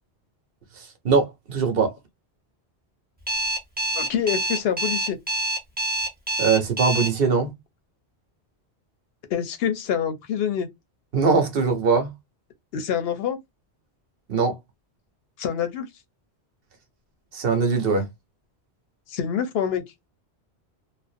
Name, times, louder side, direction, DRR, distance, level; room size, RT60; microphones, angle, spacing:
voice 1, 1.0-1.9 6.4-7.5 11.1-12.1 14.3-14.5 17.3-18.1, right 5 dB, 60° right, 0.9 m, -21 dB
Alarm, 3.3-7.1, right 1 dB, 10° right, 0.8 m, -26 dB
voice 2, 3.9-5.2 9.3-10.7 12.7-13.4 15.4-15.9 19.1-19.8, left 8 dB, 70° left, 0.8 m, -26 dB
2.5 x 2.1 x 2.4 m
omnidirectional pair, 1.1 m